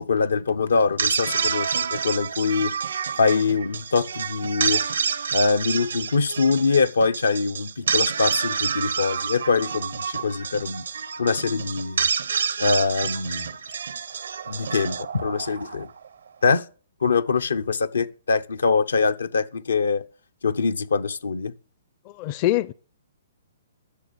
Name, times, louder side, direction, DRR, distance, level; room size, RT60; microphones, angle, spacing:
voice 1, 0.0-2.7 3.2-4.8 5.3-10.8 11.2-12.1 12.6-13.5 14.5-15.9 16.4-16.6 17.0-20.0 20.4-21.5, left 4 dB, 90° left, 1.0 m, -23 dB
sound 1, 0.8-16.1, right 6 dB, 85° right, 0.9 m, -28 dB
voice 2, 22.2-22.7, left 15 dB, 35° left, 0.5 m, -23 dB
13.0 x 6.8 x 6.9 m
hypercardioid pair, 140°, 0 cm